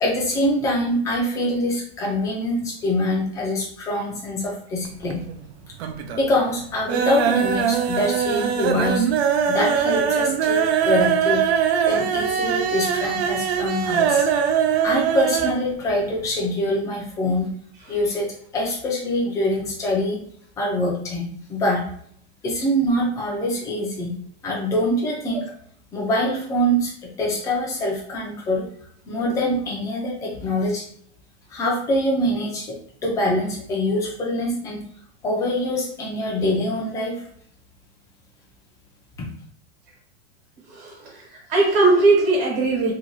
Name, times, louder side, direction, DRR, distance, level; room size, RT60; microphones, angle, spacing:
voice 1, 0.0-5.2 6.1-9.1 9.5-11.4 11.8-14.3 14.8-17.5 17.9-18.3 18.5-20.2 20.6-21.8 22.4-24.1 24.4-25.5 25.9-26.9 27.2-28.6 29.1-30.8 31.5-32.7 33.0-34.8 35.2-37.1, left 1 dB, 10° left, -3 dB, 0.4 m, -24 dB
sound 1, 4.8-5.5 5.7-6.3 6.6-15.6 15.9-16.0 16.3-16.4, right 7 dB, 70° right, 0.5 m, -22 dB
voice 2, 40.7-41.2 41.5-42.9, right 3 dB, 50° right, -2 dB, 1.2 m, -19 dB
2.7 x 2.2 x 2.9 m, 0.64 s
supercardioid pair, 150°, 34 cm